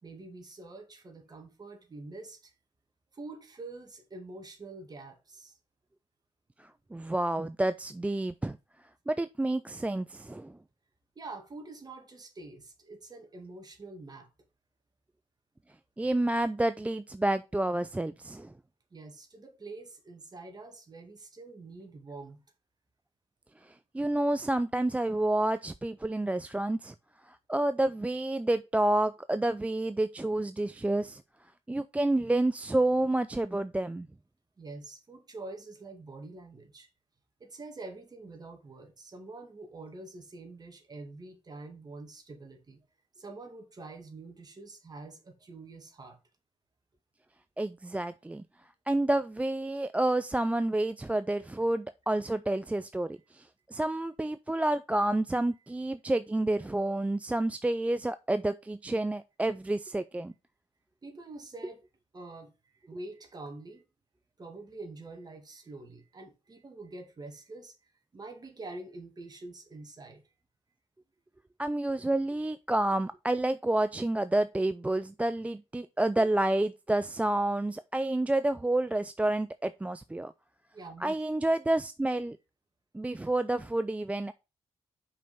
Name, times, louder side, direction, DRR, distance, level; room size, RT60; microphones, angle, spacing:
voice 1, 0.0-2.5 3.1-5.6 11.2-14.3 18.9-22.4 34.6-36.9 37.4-42.8 43.2-46.2 61.0-61.8 62.1-63.8 64.4-67.8 68.1-70.2 80.7-81.2, right 2 dB, 35° right, 2.2 m, -46 dB
voice 2, 6.6-8.6 9.1-10.6 16.0-18.5 23.6-26.9 27.3-31.2 31.7-34.1 47.6-48.4 48.9-60.3 71.6-80.3 81.0-82.4 82.9-84.3, right 1 dB, 10° right, 0.4 m, -29 dB
5.6 x 5.4 x 5.5 m
cardioid pair, 95°, 12 cm